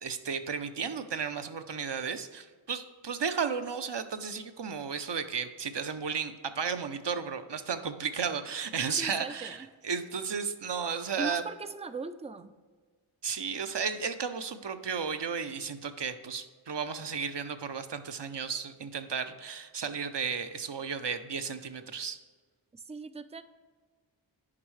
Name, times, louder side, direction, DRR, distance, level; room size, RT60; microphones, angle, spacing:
voice 1, 0.0-11.4 13.2-22.2, right 6 dB, 60° right, 9 dB, 0.6 m, -34 dB
voice 2, 9.0-9.6 11.2-12.5 22.7-23.4, right 4 dB, 15° right, 12 dB, 0.3 m, -39 dB
9.7 x 5.4 x 3.2 m, 1.5 s
wide cardioid pair, 45°, 49 cm